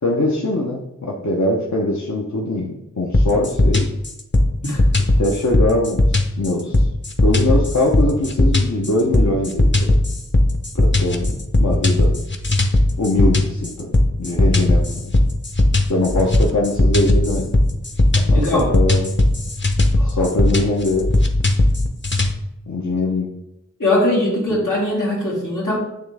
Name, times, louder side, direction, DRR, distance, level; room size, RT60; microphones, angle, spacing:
voice 1, 0.0-3.9 5.2-6.9 7.2-10.0 10.7-12.2 13.0-15.1 15.9-17.6 18.2-19.1 20.0-21.1 22.7-23.3 24.5-24.6, left 2 dB, 65° left, -2 dB, 0.8 m, -22 dB
sound 1, 3.1-22.3, left 1 dB, 35° left, 0.8 m, -17 dB
voice 2, 18.3-18.7 20.0-20.1 23.8-25.8, left 1 dB, 85° left, -5 dB, 2.1 m, -20 dB
8.6 x 3.4 x 3.4 m, 0.90 s
wide cardioid pair, 45°, 31 cm